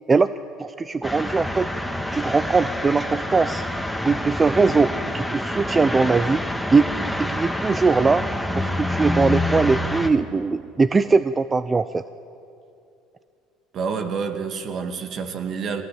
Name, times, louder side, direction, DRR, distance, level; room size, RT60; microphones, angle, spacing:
voice 1, 0.6-1.7 2.1-3.6 4.0-6.4 6.7-6.8 7.3-8.2 8.5-12.0, right 4 dB, 25° right, 13 dB, 0.6 m, -20 dB
sound 1, 1.0-10.1, left 1 dB, ahead, 2.0 m, -27 dB
voice 2, 13.7-15.8, right 5 dB, 55° right, 6 dB, 2.2 m, -28 dB
23.5 x 19.0 x 8.7 m, 2.6 s
supercardioid pair, 80°, 0 cm